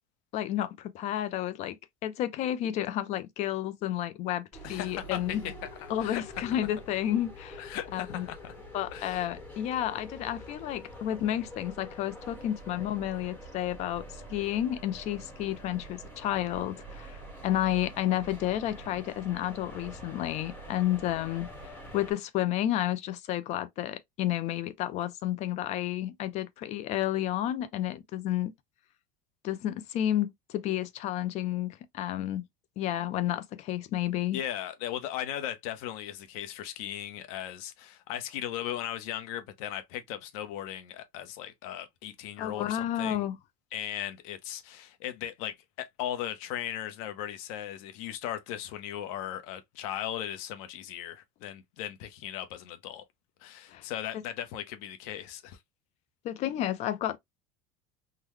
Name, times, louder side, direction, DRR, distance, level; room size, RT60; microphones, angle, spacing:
voice 1, 0.3-1.8 2.0-5.4 5.9-7.7 7.9-8.3 8.7-14.0 14.3-17.2 17.4-28.5 29.4-32.5 32.8-34.4 42.4-43.4 53.7-53.8 56.2-57.2, left 12 dB, 40° left, 0.4 m, -31 dB
sound 1, 4.5-22.1, equal, 10° left, 1.0 m, -46 dB
voice 2, 4.6-5.5 5.8-6.2 7.6-8.5 8.9-9.3 34.3-43.2 43.7-53.0 53.4-55.6, left 11 dB, 70° left, 0.8 m, -37 dB
3.8 x 2.1 x 3.1 m
cardioid pair, 160°, 19 cm